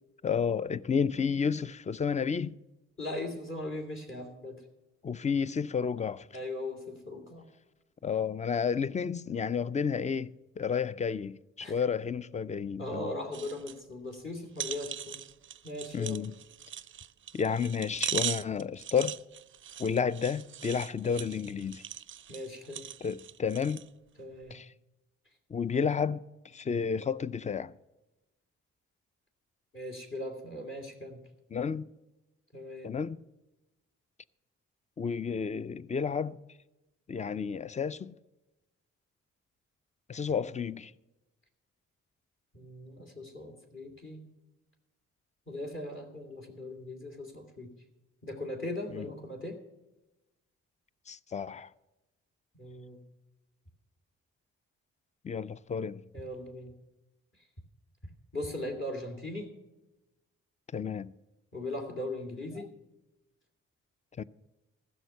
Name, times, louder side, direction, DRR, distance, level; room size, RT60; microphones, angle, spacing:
voice 1, 0.2-2.5 5.0-6.3 8.0-13.2 15.9-16.3 17.3-19.2 19.8-21.8 23.0-23.8 24.5-24.7 25.5-26.2 26.5-27.7 31.5-31.9 32.8-33.2 35.0-36.4 37.1-38.1 40.1-40.9 48.9-49.1 51.1-51.7 55.2-56.0 60.7-61.1 64.2-64.3, left 6 dB, 20° left, 0.4 m, -31 dB
voice 2, 3.0-4.6 6.3-7.4 11.6-11.7 12.8-15.2 15.6-16.2 22.3-22.9 24.2-24.5 29.7-31.2 32.5-32.9 40.3-40.4 42.5-44.2 45.5-47.7 48.2-49.6 52.6-53.0 56.1-56.7 58.3-59.5 61.5-62.7, left 1 dB, 40° left, 2.8 m, -39 dB
sound 1, 13.3-13.8 14.1-14.2 14.6-23.9 24.4-24.5, right 9 dB, 40° right, 0.4 m, -40 dB
14.5 x 6.5 x 6.7 m
supercardioid pair, 50°, 32 cm